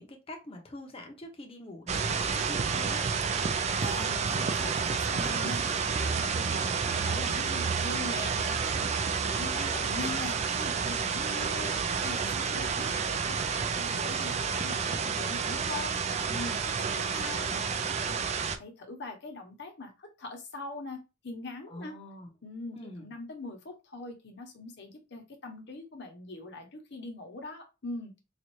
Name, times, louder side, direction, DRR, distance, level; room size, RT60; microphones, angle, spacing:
voice 1, 0.0-3.0 12.5-12.8 21.7-22.3 22.7-23.1, left 1 dB, 30° left, 0.8 m, -44 dB
sound 1, 1.9-18.6, right 5 dB, 35° right, 0.3 m, -30 dB
voice 2, 3.8-16.0 16.3-18.2 18.6-22.0 22.4-28.1, left 2 dB, 60° left, 1.0 m, -42 dB
4.0 x 2.4 x 3.1 m
head